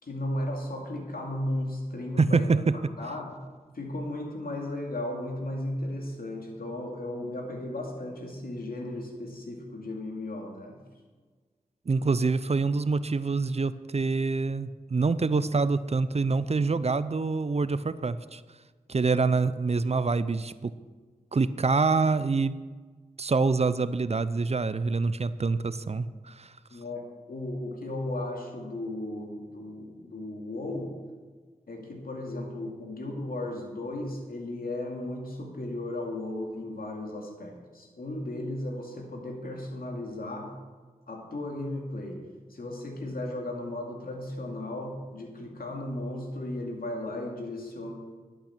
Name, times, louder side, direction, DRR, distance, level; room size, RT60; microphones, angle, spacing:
voice 1, 0.0-2.6 3.0-3.4 3.7-10.8 26.7-30.9 31.7-40.5 41.1-42.2 42.5-47.9, left 1 dB, 75° left, 1 dB, 2.4 m, -35 dB
voice 2, 2.2-2.9 11.9-18.4 18.9-20.7 21.3-22.5 23.2-26.5, right 4 dB, 45° right, 15 dB, 0.5 m, -26 dB
12.0 x 8.8 x 5.9 m, 1.4 s
cardioid pair, 45°, 15 cm